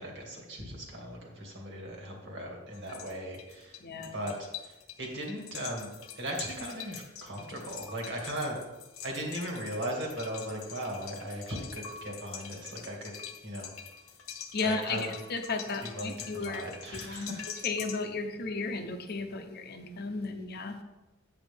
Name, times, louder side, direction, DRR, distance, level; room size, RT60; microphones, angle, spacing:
voice 1, 0.0-5.9 6.2-8.6 9.0-13.2 13.4-13.7 14.6-15.1 15.8-17.4, right 1 dB, 60° right, 0 dB, 2.1 m, -38 dB
sound 1, 2.7-18.0, left 8 dB, 85° left, 0.9 m, -45 dB
voice 2, 3.8-4.1 14.5-17.4 17.6-20.8, left 3 dB, 50° left, 6 dB, 0.8 m, -34 dB
8.8 x 8.3 x 3.5 m, 1.1 s
head